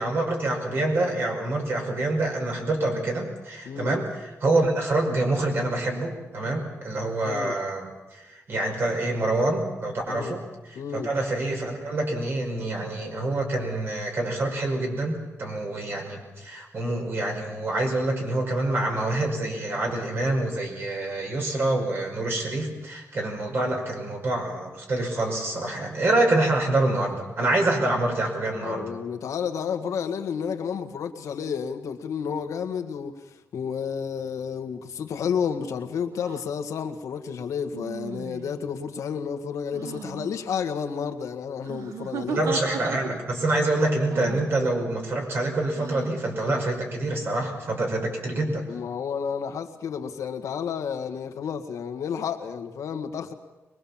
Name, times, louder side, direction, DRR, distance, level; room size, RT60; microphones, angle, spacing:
voice 1, 0.0-28.9 42.3-48.7, right 2 dB, 50° right, 2 dB, 5.3 m, -26 dB
voice 2, 3.7-4.0 7.2-7.6 10.1-10.4 10.8-11.1 28.6-33.1 33.5-42.4 48.7-53.3, left 7 dB, 90° left, 6 dB, 1.8 m, -31 dB
sound 1, 36.2-36.4 37.7-38.6 39.7-40.3 41.6-43.4 44.1-44.5 45.7-46.2, right 7 dB, 85° right, 1.5 m, -36 dB
23.5 x 21.5 x 7.3 m, 1.1 s
wide cardioid pair, 155°, 5 cm